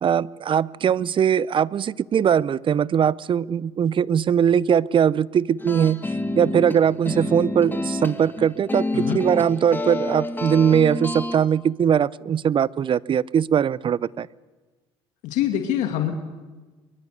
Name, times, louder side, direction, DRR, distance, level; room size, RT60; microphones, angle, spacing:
voice 1, 0.0-6.0 6.4-14.3, right 8 dB, 40° right, 23 dB, 0.7 m, -21 dB
sound 1, 5.6-11.4, left 2 dB, 15° left, 2.3 m, -29 dB
voice 2, 15.2-16.1, left 11 dB, 65° left, 6 dB, 2.3 m, -24 dB
23.0 x 23.0 x 8.2 m, 1.3 s
hypercardioid pair, 70°, 13 cm